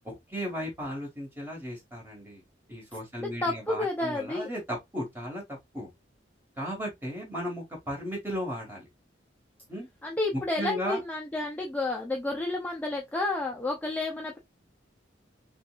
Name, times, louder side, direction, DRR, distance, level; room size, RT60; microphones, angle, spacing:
voice 1, 0.0-2.4 2.7-5.4 5.7-5.9 6.6-8.8 9.7-9.9 10.6-11.0, equal, 10° right, 2.1 m, -35 dB
voice 2, 3.2-4.5 10.0-14.4, left 2 dB, 10° left, 0.6 m, -31 dB
5.7 x 2.5 x 2.5 m
head